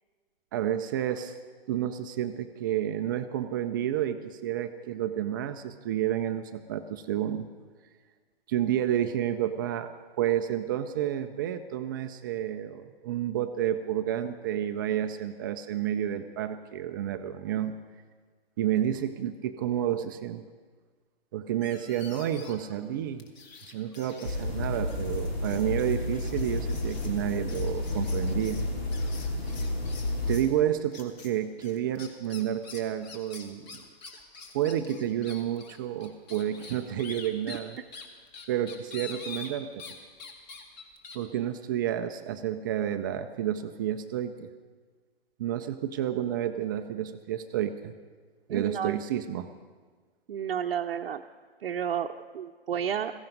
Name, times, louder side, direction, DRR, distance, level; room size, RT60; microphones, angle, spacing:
voice 1, 0.5-1.4 1.7-7.5 8.5-17.8 18.6-20.4 21.3-23.3 23.7-28.6 30.3-33.8 34.5-37.8 38.5-39.8 41.1-44.5 45.4-47.9 48.5-49.5, right 11 dB, 20° right, 7 dB, 0.4 m, -30 dB
sound 1, 21.6-22.7 23.2-30.5 30.9-31.3 31.6-39.9 40.2-41.2, left 4 dB, 45° left, 2.1 m, -46 dB
sound 2, 24.2-30.4, left 2 dB, 75° left, 3.0 m, -31 dB
voice 2, 48.5-49.0 50.3-51.2 51.6-52.1 52.3-53.1, right 8 dB, 65° right, 2 dB, 0.7 m, -31 dB
16.0 x 15.5 x 5.2 m, 1.5 s
figure-of-eight pair, 125°, 31 cm